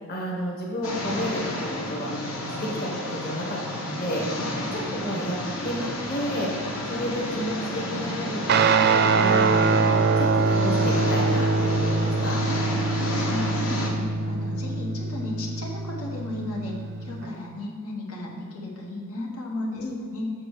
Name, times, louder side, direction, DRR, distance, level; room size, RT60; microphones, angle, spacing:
voice 1, 0.1-4.4 4.7-5.4 5.6-12.4 13.6-14.1 19.8-20.0, equal, 45° left, -2 dB, 1.4 m, -32 dB
sound 1, 0.8-13.9, left 1 dB, 65° left, 1.4 m, -31 dB
Guitar, 8.5-17.3, right 4 dB, 45° right, 0.4 m, -23 dB
voice 2, 12.7-13.9 14.3-20.3, left 2 dB, 85° left, -3 dB, 1.6 m, -35 dB
7.5 x 6.0 x 4.9 m, 2.1 s
head